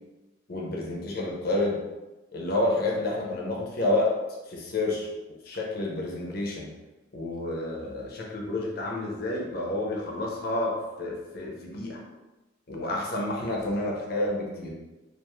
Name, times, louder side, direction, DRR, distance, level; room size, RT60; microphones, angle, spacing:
voice 1, 0.5-1.8 2.3-4.1 4.5-5.1 5.4-6.7 7.1-12.0 12.7-14.7, left 2 dB, 50° left, -2 dB, 0.6 m, -29 dB
2.5 x 2.3 x 3.0 m, 1.1 s
head